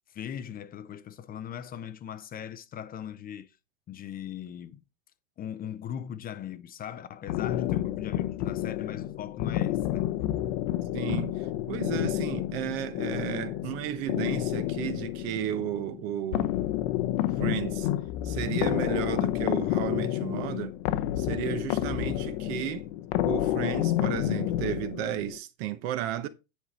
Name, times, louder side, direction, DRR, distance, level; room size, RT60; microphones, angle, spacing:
voice 1, 0.1-3.5 3.9-4.8 5.4-10.0, left 9 dB, 20° left, 0.7 m, -39 dB
sound 1, 7.3-25.4, left 13 dB, 50° left, 0.9 m, -29 dB
voice 2, 10.9-16.5 17.4-17.9 18.2-20.8 21.2-22.9 23.3-26.3, right 12 dB, 50° right, 1.0 m, -33 dB
10.0 x 4.8 x 4.3 m
hypercardioid pair, 120°, 40 cm